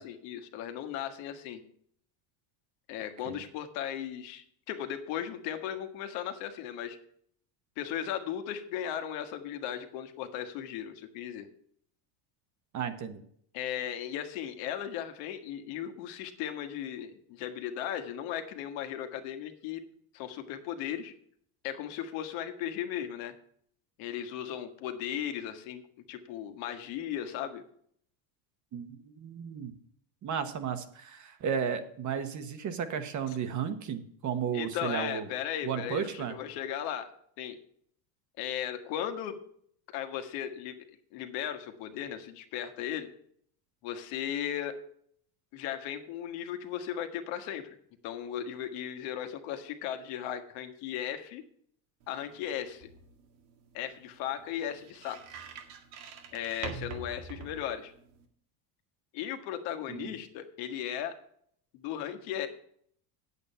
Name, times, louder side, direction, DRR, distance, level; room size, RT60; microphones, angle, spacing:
voice 1, 0.0-1.6 2.9-7.0 7.8-11.5 13.5-19.8 20.1-21.1 21.6-23.3 24.0-27.6 34.5-37.1 37.4-37.6 38.4-39.4 39.9-40.8 41.1-43.1 43.8-44.8 45.5-47.7 48.0-51.4 52.1-52.9 53.7-55.2 56.3-57.9 59.1-61.2 61.7-62.5, left 10 dB, 70° left, 7 dB, 1.6 m, -36 dB
voice 2, 12.7-13.2 28.7-29.7 30.2-35.3 35.6-36.4 59.9-60.1, right 7 dB, 40° right, 9 dB, 1.2 m, -34 dB
sound 1, 52.0-58.2, right 5 dB, 85° right, 2.0 m, -46 dB
9.1 x 8.2 x 5.5 m, 0.64 s
cardioid pair, 135°, 47 cm